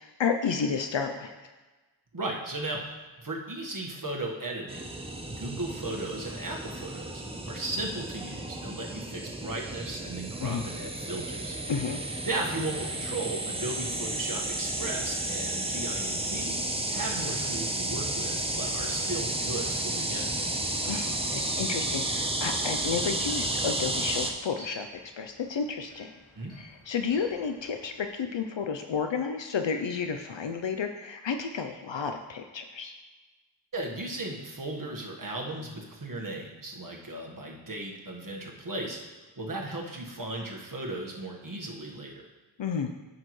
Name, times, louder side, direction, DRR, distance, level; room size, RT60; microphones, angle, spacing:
voice 1, 0.0-1.4 10.4-10.7 11.7-12.0 20.8-24.9 25.2-26.1 26.5-32.9 42.6-42.9, left 6 dB, 70° left, 6 dB, 0.6 m, -31 dB
voice 2, 2.1-4.9 5.3-11.6 12.2-16.6 16.9-20.5 26.3-26.5 33.7-39.0 39.4-42.2, right 2 dB, 45° right, -1 dB, 1.5 m, -36 dB
sound 1, 4.7-24.3, right 1 dB, 10° right, 0.8 m, -32 dB
sound 2, 22.5-28.1, right 1 dB, 85° left, 2.7 m, -53 dB
9.9 x 6.6 x 3.2 m, 1.2 s
wide cardioid pair, 55°, 47 cm